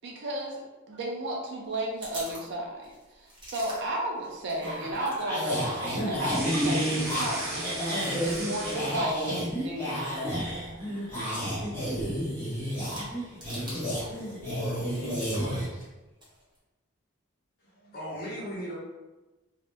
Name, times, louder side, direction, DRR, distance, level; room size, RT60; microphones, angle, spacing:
voice 1, 0.0-10.1, right 1 dB, 60° right, 0 dB, 0.5 m, -34 dB
sound 1, 1.6-5.3 5.5-14.2 14.5-16.6, equal, 20° right, 1.0 m, -48 dB
sound 2, 4.6-15.7, equal, 10° left, 1.0 m, -31 dB
sound 3, 6.2-9.4 9.7-10.4, right 2 dB, 80° right, 1.1 m, -37 dB
voice 2, 13.6-15.9, left 1 dB, 75° left, -3 dB, 0.9 m, -41 dB
voice 3, 17.6-18.8, equal, 50° left, -6 dB, 0.9 m, -37 dB
2.8 x 2.1 x 3.3 m, 1.1 s
head